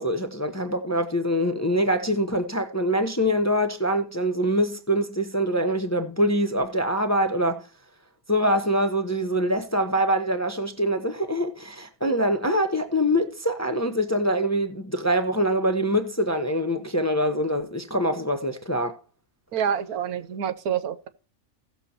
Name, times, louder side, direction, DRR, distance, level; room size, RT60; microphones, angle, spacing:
voice 1, 0.0-7.6 8.3-19.0, equal, 15° left, 0.8 m, -24 dB
voice 2, 19.5-21.1, right 8 dB, 85° right, 1.4 m, -27 dB
16.5 x 6.8 x 2.9 m
omnidirectional pair, 1.6 m